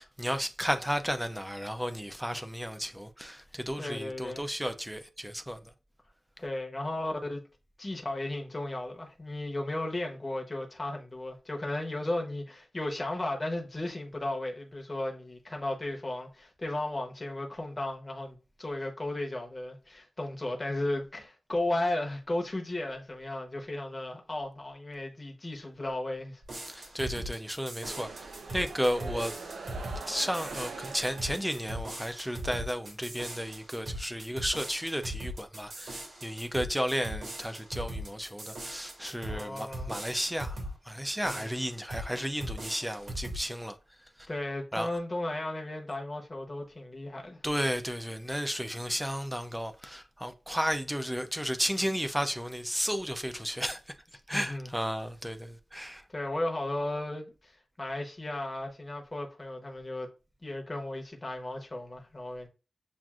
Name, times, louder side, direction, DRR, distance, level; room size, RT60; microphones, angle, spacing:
voice 1, 0.0-5.6 26.7-28.1 28.5-29.3 30.1-40.6 40.9-43.8 44.7-44.9 47.4-53.8 54.3-56.0, equal, 5° right, 0.4 m, -33 dB
voice 2, 3.7-4.4 6.4-7.4 7.8-26.4 26.8-26.9 39.3-39.9 41.3-41.5 44.3-47.4 54.3-54.7 56.1-60.1 60.4-62.5, left 1 dB, 20° left, 0.8 m, -35 dB
sound 1, 26.4-40.8 41.2-42.1 42.4-43.4, right 1 dB, 65° right, 2.0 m, -40 dB
sound 2, 27.8-31.6, right 4 dB, 85° right, 0.6 m, -42 dB
7.2 x 2.5 x 2.3 m
wide cardioid pair, 175°, 0 cm